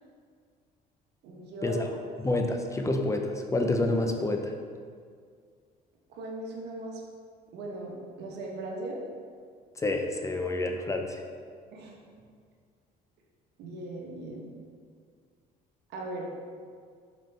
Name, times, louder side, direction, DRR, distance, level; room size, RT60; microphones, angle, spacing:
voice 1, 1.2-1.9 6.1-7.0 7.5-9.0 11.7-12.0 13.6-14.5 15.9-16.3, right 2 dB, 80° right, -1 dB, 1.2 m, -38 dB
voice 2, 2.2-4.5 9.8-11.2, left 2 dB, 20° left, 4 dB, 0.5 m, -28 dB
6.5 x 5.2 x 3.4 m, 2.1 s
cardioid pair, 110°, 17 cm